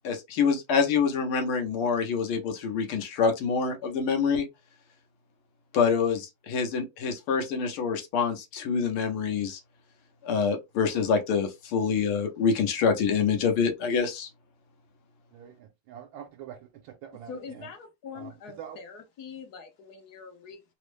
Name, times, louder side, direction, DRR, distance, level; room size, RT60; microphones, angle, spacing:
voice 1, 0.0-4.4 5.7-9.6 10.2-14.3, left 6 dB, 85° left, 1.7 m, -26 dB
voice 2, 15.3-17.7 18.1-18.8, right 9 dB, 75° right, 1.4 m, -45 dB
voice 3, 17.3-20.6, left 6 dB, 65° left, 1.1 m, -43 dB
4.0 x 2.0 x 3.1 m
omnidirectional pair, 2.3 m